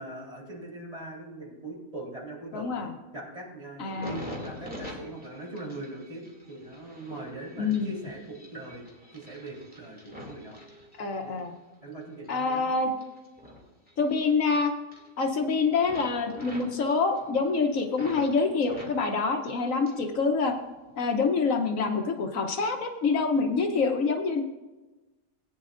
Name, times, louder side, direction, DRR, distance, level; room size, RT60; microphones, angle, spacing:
voice 1, 0.0-2.7 3.1-10.6 11.2-11.4 11.8-12.7, right 1 dB, 25° right, -3 dB, 3.6 m, -41 dB
voice 2, 2.5-2.9 3.8-4.2 7.6-7.9 11.0-11.5 12.3-12.9 14.0-14.7 15.2-20.6 21.0-24.4, left 4 dB, 75° left, 5 dB, 1.3 m, -26 dB
sound 1, 3.8-11.5 11.9-14.5 14.8-15.5 15.8-18.3 18.6-20.2 20.5-21.2 21.8-22.0, equal, 5° right, 2.4 m, -46 dB
18.5 x 9.7 x 2.5 m, 1.1 s
omnidirectional pair, 1.4 m